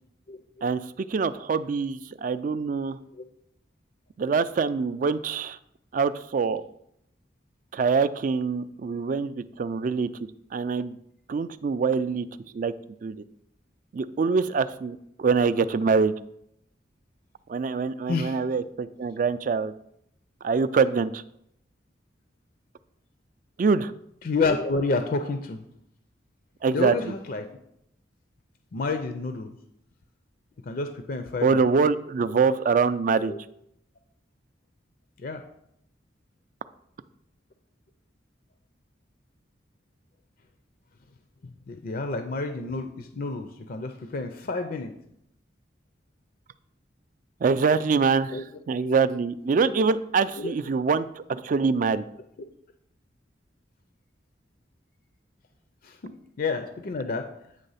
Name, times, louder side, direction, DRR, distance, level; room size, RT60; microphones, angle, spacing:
voice 1, 0.6-3.0 4.2-5.6 5.9-6.6 7.7-10.1 10.5-11.0 11.3-12.3 12.5-12.7 13.0-13.1 13.9-16.1 17.5-19.7 20.4-21.2 23.6-23.9 26.6-27.1 31.4-33.3 47.4-52.0, right 5 dB, 45° right, 14 dB, 0.3 m, -24 dB
voice 2, 18.1-18.4 24.2-25.6 26.7-27.5 28.7-29.5 30.7-31.7 33.3-33.4 35.2-35.4 41.7-44.9 48.3-48.4 49.6-49.8 50.4-50.5 55.8-57.3, left 3 dB, 50° left, 7 dB, 0.5 m, -29 dB
8.9 x 3.3 x 5.5 m, 0.75 s
head